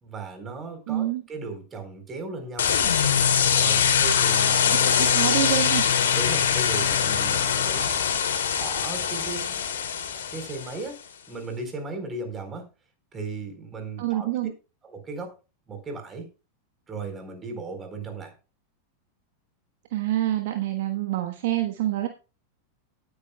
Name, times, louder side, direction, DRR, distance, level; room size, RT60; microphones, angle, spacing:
voice 1, 0.0-2.7 3.5-5.0 6.1-7.9 8.5-9.5 10.3-11.0 11.3-12.7 13.1-14.3 14.8-15.3 15.7-16.3 16.9-18.3, right 3 dB, 20° right, 5 dB, 4.1 m, -36 dB
voice 2, 0.9-1.2 5.0-5.8 14.0-14.5 19.9-22.1, right 13 dB, 50° right, 5 dB, 1.3 m, -26 dB
sound 1, 2.6-10.8, left 8 dB, 60° left, 2.9 m, -23 dB
18.0 x 9.4 x 2.3 m, 0.31 s
figure-of-eight pair, 90°, 0 cm